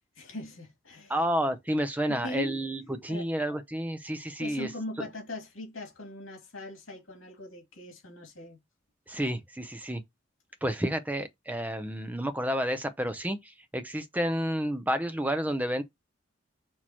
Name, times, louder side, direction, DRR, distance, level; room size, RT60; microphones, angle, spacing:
voice 1, 0.2-1.1 2.1-2.6 3.1-3.3 4.4-8.6, left 2 dB, 80° left, 2.3 m, -40 dB
voice 2, 1.1-4.7 9.1-10.0 10.6-15.8, equal, 10° right, 0.6 m, -30 dB
6.2 x 2.9 x 2.9 m
head